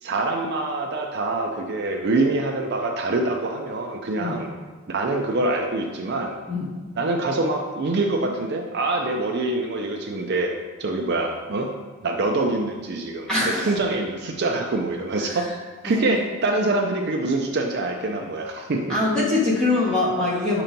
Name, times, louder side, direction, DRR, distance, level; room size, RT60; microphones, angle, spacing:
voice 1, 0.0-4.5 4.9-6.4 7.0-10.5 10.8-11.7 12.0-15.5 15.8-18.8, right 2 dB, 50° right, 2 dB, 0.5 m, -25 dB
voice 2, 13.3-13.7 15.9-16.0 18.9-20.6, left 2 dB, 5° left, -8 dB, 1.6 m, -23 dB
6.7 x 3.0 x 5.1 m, 1.4 s
head